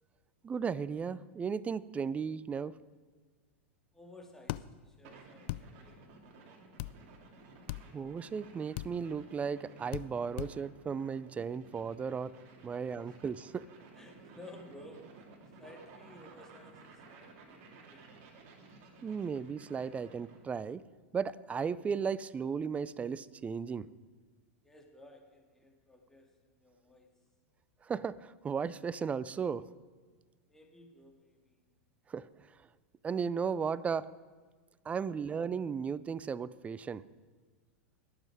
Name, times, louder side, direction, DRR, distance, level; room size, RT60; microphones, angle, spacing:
voice 1, 0.4-2.7 7.9-13.7 19.0-20.8 21.1-23.9 27.8-29.7 32.1-32.3 33.0-34.1 34.9-37.0, right 6 dB, 20° right, 19 dB, 0.4 m, -35 dB
voice 2, 3.9-7.0 12.6-13.2 13.9-15.0 15.6-18.0 24.6-27.1 30.5-31.6, left 1 dB, 5° left, 2 dB, 2.4 m, -56 dB
sound 1, 4.5-4.6 5.5-5.6 6.8-6.9 7.7-7.8 8.8-8.9 9.9-10.1 10.4-10.5, left 18 dB, 60° left, 0.4 m, -37 dB
sound 2, 5.0-20.5, right 4 dB, 50° right, 2.5 m, -55 dB
20.5 x 7.7 x 4.8 m, 1.4 s
hypercardioid pair, 110°, 7 cm